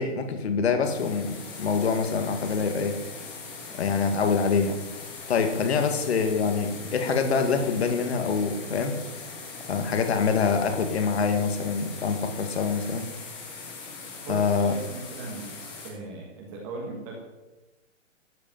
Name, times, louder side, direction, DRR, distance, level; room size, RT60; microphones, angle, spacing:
voice 1, 0.0-3.0 3.8-4.8 5.3-9.0 9.7-13.1 14.3-14.7, left 5 dB, 55° left, 6 dB, 2.0 m, -25 dB
sound 1, 0.8-15.9, left 4 dB, 10° left, 1.4 m, -41 dB
voice 2, 14.2-15.6 15.8-17.2, right 3 dB, 15° right, -1 dB, 1.4 m, -38 dB
13.0 x 8.4 x 7.5 m, 1.1 s
hypercardioid pair, 180°, 38 cm